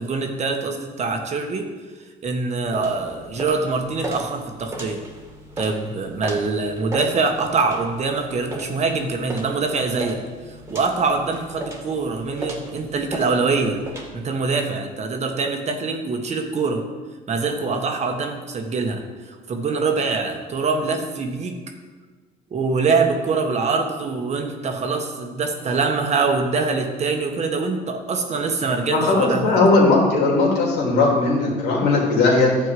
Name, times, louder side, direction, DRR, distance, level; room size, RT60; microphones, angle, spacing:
voice 1, 0.0-1.7 2.2-5.0 5.6-10.2 10.5-13.8 14.1-16.8 17.3-21.5 22.5-29.5, right 4 dB, 40° right, 4 dB, 1.3 m, -24 dB
sound 1, 2.7-14.1, right 1 dB, 15° right, 2.0 m, -36 dB
voice 2, 28.9-32.6, left 3 dB, 80° left, -2 dB, 2.9 m, -18 dB
11.0 x 4.5 x 7.6 m, 1.4 s
cardioid pair, 110°, 17 cm